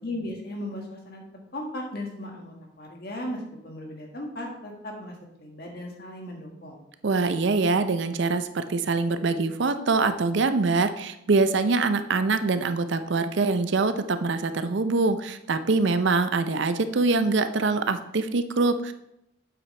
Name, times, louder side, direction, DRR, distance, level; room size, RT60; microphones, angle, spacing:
voice 1, 0.0-6.8, left 1 dB, 50° left, 0 dB, 1.8 m, -37 dB
voice 2, 7.0-18.9, right 3 dB, 60° right, 10 dB, 0.5 m, -24 dB
8.7 x 7.9 x 3.3 m, 0.82 s
head